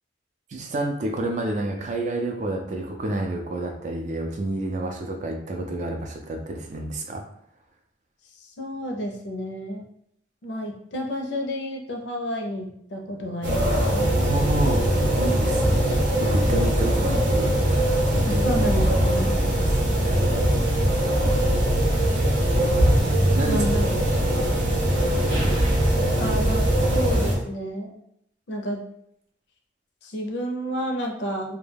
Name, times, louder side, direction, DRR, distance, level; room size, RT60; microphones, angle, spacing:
voice 1, 0.5-7.2 14.1-17.5 18.1-18.4 19.5-19.6 20.0-20.2 23.3-23.6, right 2 dB, 40° right, 3 dB, 0.3 m, -29 dB
voice 2, 8.4-9.8 10.4-14.1 18.2-19.3 23.4-23.9 26.1-28.0 28.5-28.8 30.0-31.6, equal, 70° left, 2 dB, 0.5 m, -30 dB
sound 1, 13.4-27.4, right 1 dB, 75° right, 0.7 m, -21 dB
2.3 x 2.1 x 3.2 m, 0.73 s
head